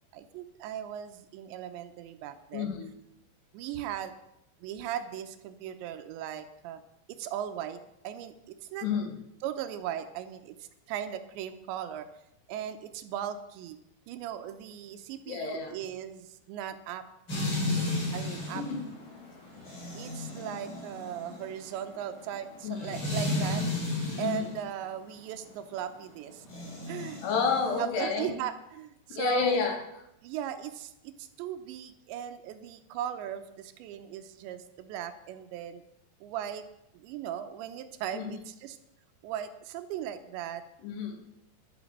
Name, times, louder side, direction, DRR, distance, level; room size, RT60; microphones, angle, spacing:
voice 1, 0.1-2.7 3.5-4.1 4.6-6.8 7.1-8.9 9.4-12.1 12.5-13.8 14.1-17.1 17.8-18.6 20.0-23.7 24.2-26.5 26.9-27.2 27.8-29.6 30.2-35.8 36.2-36.7 36.9-38.8 39.2-40.6, right 10 dB, 90° right, 9 dB, 3.2 m, -38 dB
voice 2, 2.5-2.9 8.8-9.2 15.3-15.8 18.5-18.9 22.6-23.0 24.2-24.5 27.2-28.4 29.1-29.8 38.1-38.3 40.8-41.2, left 5 dB, 70° left, 4 dB, 3.9 m, -30 dB
sound 1, 17.3-24.5 26.4-27.8, left 2 dB, 30° left, 4.2 m, -33 dB
11.5 x 9.5 x 7.4 m, 0.83 s
omnidirectional pair, 5.0 m